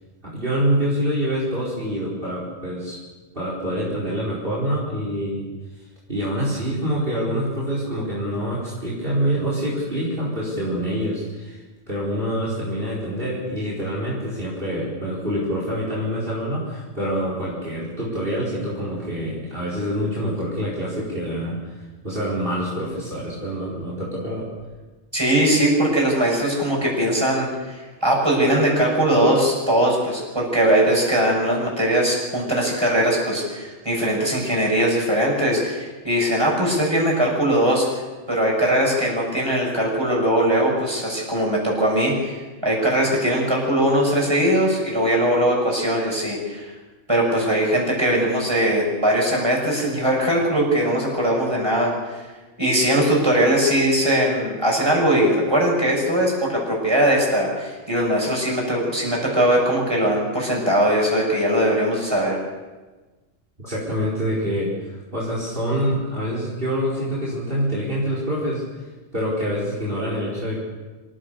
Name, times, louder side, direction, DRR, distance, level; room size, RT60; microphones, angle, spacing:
voice 1, 0.2-3.0 3.3-5.5 6.1-21.6 22.0-24.5 63.6-68.6 69.1-70.6, equal, 40° right, -5 dB, 4.8 m, -26 dB
voice 2, 25.1-37.9 38.3-46.7 47.1-52.2 52.6-62.4, right 1 dB, 20° right, -2 dB, 7.3 m, -20 dB
26.0 x 15.5 x 6.9 m, 1.3 s
omnidirectional pair, 1.3 m